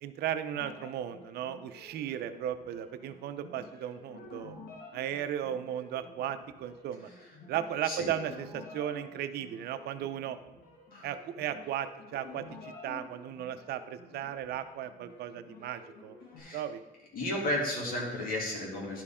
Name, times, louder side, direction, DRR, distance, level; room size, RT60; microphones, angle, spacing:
voice 1, 0.0-4.6 4.9-7.1 7.5-10.4 11.0-16.2 16.5-16.8, right 10 dB, 70° right, 10 dB, 0.6 m, -36 dB
sound 1, 0.5-16.4, left 3 dB, 85° left, 1.9 m, -51 dB
voice 2, 17.1-19.0, left 1 dB, 60° left, -2 dB, 2.5 m, -33 dB
11.5 x 4.6 x 3.6 m, 1.1 s
cardioid pair, 110°, 17 cm